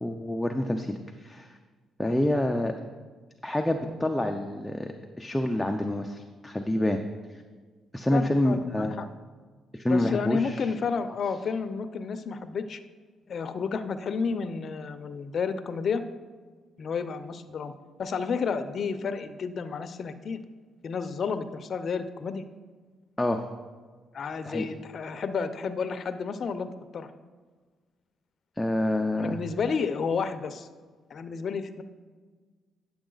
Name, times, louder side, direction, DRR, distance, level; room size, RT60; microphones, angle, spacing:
voice 1, 0.0-1.5 2.0-2.7 3.4-7.0 7.3-7.4 7.9-8.9 9.7-10.7 23.2-23.4 24.4-24.6 28.6-29.4, left 1 dB, 5° left, 4 dB, 0.5 m, -27 dB
voice 2, 8.1-9.1 9.9-12.8 13.3-16.0 16.8-17.7 18.0-20.4 20.8-22.5 24.1-27.1 29.2-30.7 31.1-31.8, left 5 dB, 50° left, 10 dB, 0.6 m, -31 dB
10.0 x 7.1 x 3.9 m, 1.4 s
cardioid pair, 90°, 0 cm